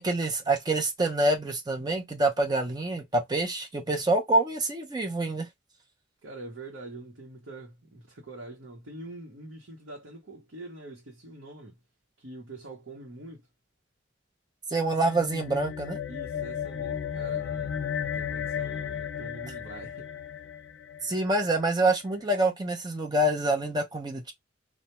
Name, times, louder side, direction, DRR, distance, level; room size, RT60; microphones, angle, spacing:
voice 1, 0.0-5.5 14.7-16.0 21.0-24.3, right 2 dB, 20° right, 0.5 m, -26 dB
voice 2, 6.2-11.8 12.2-13.5 16.1-20.1, right 2 dB, 85° right, 0.8 m, -44 dB
sound 1, 14.8-21.5, left 8 dB, 70° left, 0.4 m, -34 dB
2.2 x 2.1 x 2.8 m
head